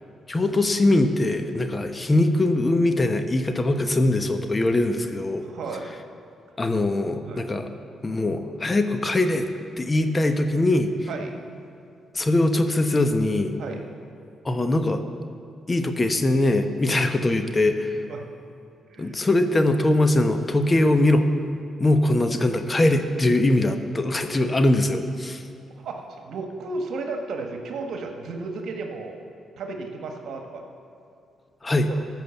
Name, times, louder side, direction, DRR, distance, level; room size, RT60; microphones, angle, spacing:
voice 1, 0.3-5.4 6.6-7.7 8.0-9.5 9.8-10.9 12.1-13.6 14.4-15.0 15.7-18.0 19.0-21.3 21.8-25.4 31.6-31.9, left 2 dB, 30° left, 7 dB, 1.0 m, -22 dB
voice 2, 5.4-5.9 7.2-7.4 11.1-11.4 13.6-13.9 18.1-18.2 18.9-19.2 25.8-29.2 29.6-30.6 31.9-32.0, right 3 dB, 70° right, 3 dB, 1.4 m, -34 dB
14.0 x 6.1 x 7.0 m, 2.6 s
supercardioid pair, 65°, 0 cm